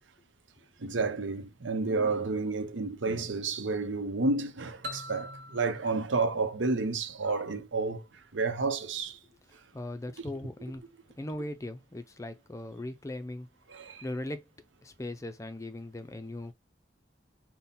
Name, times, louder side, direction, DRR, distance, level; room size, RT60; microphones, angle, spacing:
voice 1, 0.8-8.0 8.3-9.2 13.7-14.0, right 3 dB, 85° right, 0.8 m, -30 dB
sound 1, 4.8-7.5, left 1 dB, 60° right, 1.0 m, -44 dB
voice 2, 9.7-10.8 11.2-13.5 14.0-14.5 14.8-16.5, left 1 dB, 15° left, 0.4 m, -39 dB
5.4 x 2.2 x 4.2 m
head